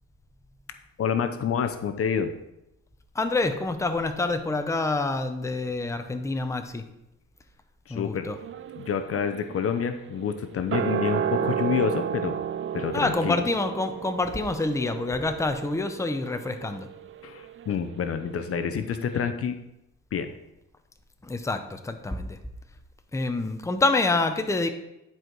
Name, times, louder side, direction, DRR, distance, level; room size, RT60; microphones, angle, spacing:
voice 1, 1.0-2.3 7.9-8.3 8.8-12.4 12.7-13.4 17.2-19.6 20.1-20.3, left 7 dB, 50° left, 8 dB, 0.7 m, -28 dB
voice 2, 3.1-6.8 7.9-8.4 12.9-16.9 21.2-22.4 23.1-24.7, left 3 dB, 10° left, 7 dB, 0.7 m, -27 dB
sound 1, 8.3-18.7 18.9-19.0, right 9 dB, 40° right, 0.5 m, -33 dB
10.5 x 4.8 x 4.6 m, 0.89 s
cardioid pair, 90°, 30 cm